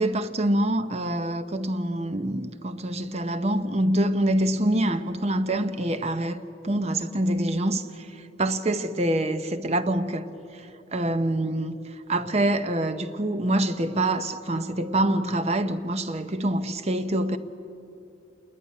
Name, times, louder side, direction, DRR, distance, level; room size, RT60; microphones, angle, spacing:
voice 1, 0.0-10.3 10.5-10.7 10.9-11.8 12.1-17.4, right 1 dB, 35° right, 0.7 m, -25 dB
27.5 x 11.0 x 9.6 m
head